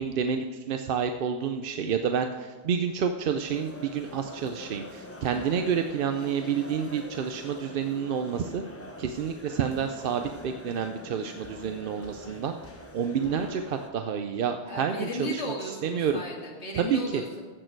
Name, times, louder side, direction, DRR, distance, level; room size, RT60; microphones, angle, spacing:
voice 1, 0.0-8.6 9.0-12.5 12.9-15.4 15.8-16.2 16.7-17.2, right 7 dB, 60° right, 6 dB, 0.7 m, -29 dB
sound 1, 3.4-13.9, left 1 dB, 15° left, 0.7 m, -44 dB
sound 2, 9.0-9.2 10.2-10.4 11.4-11.6 12.0-12.2 12.6-12.8 13.2-13.4, equal, 35° right, 1.9 m, -52 dB
voice 2, 14.7-17.4, left 1 dB, 85° left, -1 dB, 2.4 m, -35 dB
15.0 x 6.6 x 4.6 m, 1.4 s
omnidirectional pair, 1.2 m